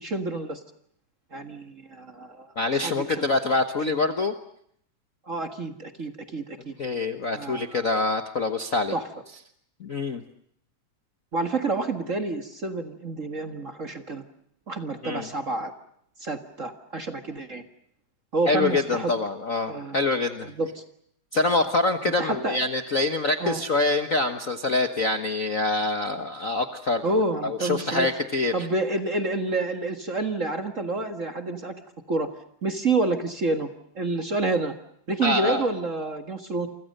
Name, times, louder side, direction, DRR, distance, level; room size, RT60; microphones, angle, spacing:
voice 1, 0.0-0.6 1.3-2.5 2.8-3.2 5.3-6.7 7.3-7.9 8.9-9.1 11.3-14.2 14.7-15.7 16.2-17.6 18.3-19.1 19.7-20.0 20.4-20.8 21.6-21.7 22.0-22.6 23.4-23.6 27.0-28.1 28.5-31.7 32.1-32.3 32.6-33.7 33.9-34.7 35.1-36.7, right 2 dB, 35° right, 7 dB, 1.3 m, -28 dB
voice 2, 2.6-4.3 6.8-8.9 9.8-10.2 15.0-15.3 18.5-20.5 21.3-27.2 27.4-28.5 35.2-35.6, left 3 dB, 85° left, 7 dB, 0.7 m, -25 dB
29.0 x 25.0 x 6.7 m, 0.69 s
omnidirectional pair, 3.6 m